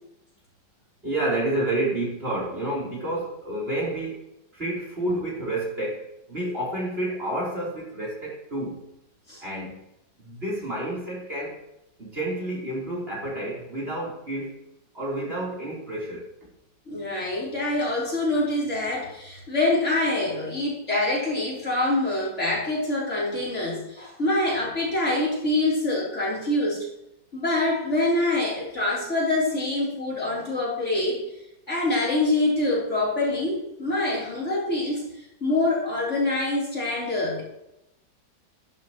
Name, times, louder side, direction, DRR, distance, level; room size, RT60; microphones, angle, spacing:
voice 1, 1.0-4.2 4.5-8.8 9.4-9.8 10.2-11.6 12.0-14.6 14.9-16.3, right 1 dB, 30° right, -5 dB, 4.0 m, -29 dB
voice 2, 16.9-26.9 27.3-31.2 31.7-37.4, left 2 dB, 40° left, -5 dB, 4.0 m, -25 dB
12.5 x 11.5 x 3.1 m, 0.86 s
omnidirectional pair, 1.9 m